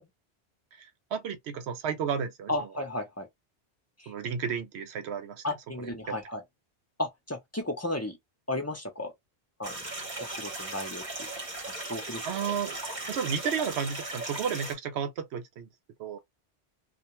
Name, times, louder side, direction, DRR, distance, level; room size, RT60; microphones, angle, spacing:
voice 1, 0.8-2.7 4.1-5.4 5.8-6.2 12.2-12.8 13.1-15.7 16.0-16.2, right 7 dB, 75° right, 0.8 m, -33 dB
voice 2, 2.5-3.3 4.0-4.1 5.4-6.4 7.0-8.2 8.5-9.1 9.6-9.8 10.2-11.3 11.7-12.5, left 1 dB, 15° left, 0.6 m, -34 dB
small stream forest, 9.6-14.7, right 2 dB, 45° right, 1.0 m, -37 dB
2.4 x 2.1 x 2.9 m
omnidirectional pair, 1.1 m